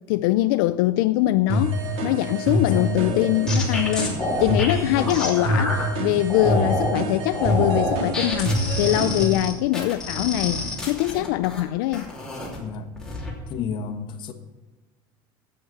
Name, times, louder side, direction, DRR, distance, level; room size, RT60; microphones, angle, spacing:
voice 1, 0.1-12.1, left 16 dB, 85° left, 0.4 m, -23 dB
sound 1, 1.5-9.3, equal, 60° right, 1.7 m, -26 dB
voice 2, 2.6-3.2 4.9-5.2 9.2-9.4 12.6-12.9 13.5-14.3, left 5 dB, 45° left, 1.3 m, -31 dB
sound 2, 2.9-5.8 6.3-7.0 7.3-11.6 11.9-12.6 13.0-13.3, left 2 dB, 5° left, 2.9 m, -28 dB
12.0 x 8.0 x 7.4 m
cardioid pair, 145°, 11 cm